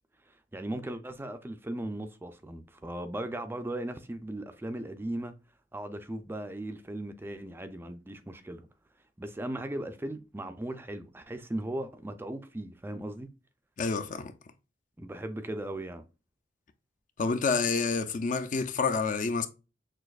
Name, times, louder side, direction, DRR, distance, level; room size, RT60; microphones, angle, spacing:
voice 1, 0.3-5.3 5.7-8.6 9.2-13.3 15.0-16.1, right 1 dB, 10° right, 0.4 m, -37 dB
voice 2, 13.8-14.3 17.2-19.5, left 4 dB, 45° left, 0.5 m, -28 dB
6.2 x 2.5 x 2.3 m
head